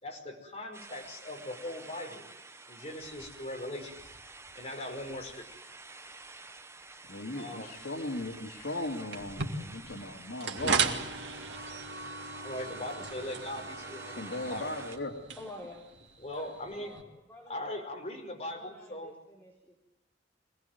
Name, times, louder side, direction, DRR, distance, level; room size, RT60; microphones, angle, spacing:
voice 1, 0.0-2.2 2.7-4.0 4.6-5.4 7.3-7.7 12.3-14.7 16.2-17.0 17.5-19.1, left 1 dB, 35° left, 1 dB, 5.3 m, -40 dB
sound 1, 0.7-15.0, right 3 dB, 15° right, 1.0 m, -49 dB
voice 2, 7.1-10.8 12.6-12.7 14.1-15.2, left 2 dB, 85° left, 2 dB, 2.6 m, -37 dB
sound 2, 9.1-17.0, right 5 dB, 75° right, 2.5 m, -36 dB
voice 3, 15.4-15.9 16.2-18.0 18.5-19.8, left 1 dB, 10° left, -1 dB, 3.8 m, -50 dB
24.5 x 18.5 x 9.4 m, 0.93 s
head